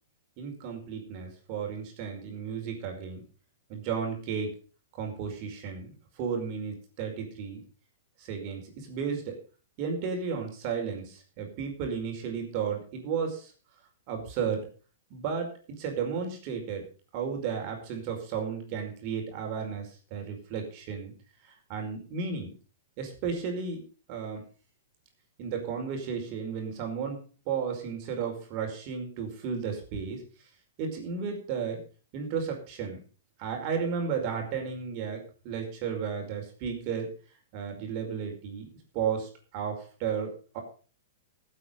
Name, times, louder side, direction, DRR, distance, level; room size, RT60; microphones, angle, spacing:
voice 1, 0.4-3.2 3.7-4.5 4.9-7.6 8.2-9.4 9.8-13.5 14.1-14.7 15.1-16.8 17.1-21.1 21.4-22.5 23.0-23.8 24.1-24.5 25.4-30.2 30.8-31.8 32.1-33.0 33.4-37.1 37.5-40.6, right 6 dB, 45° right, 3 dB, 5.1 m, -33 dB
15.5 x 8.8 x 5.3 m, 0.39 s
hypercardioid pair, 115°, 0 cm